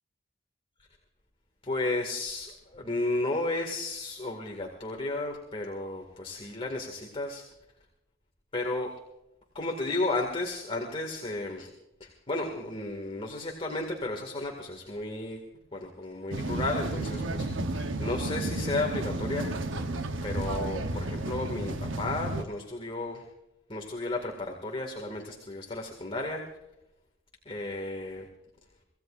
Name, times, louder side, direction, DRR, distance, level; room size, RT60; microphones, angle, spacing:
voice 1, 1.6-7.5 8.5-8.9 9.5-11.7 12.0-15.4 15.7-19.8 20.2-23.3 23.7-26.6 27.5-28.2, left 2 dB, 30° left, 1 dB, 2.1 m, -33 dB
sound 1, 16.3-22.4, right 2 dB, 70° right, 1.0 m, -32 dB
25.0 x 16.5 x 2.6 m, 0.88 s
head